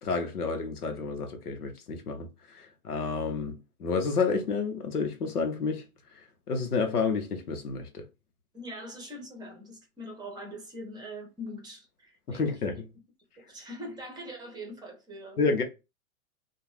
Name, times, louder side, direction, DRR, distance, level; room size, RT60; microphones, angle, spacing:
voice 1, 0.0-5.8 6.5-8.0 12.3-12.9 15.4-15.6, left 4 dB, 90° left, 0.8 m, -30 dB
voice 2, 8.5-12.4 12.8-12.9 13.4-15.5, equal, 10° right, 0.7 m, -42 dB
2.6 x 2.2 x 3.1 m
hypercardioid pair, 120°, 44 cm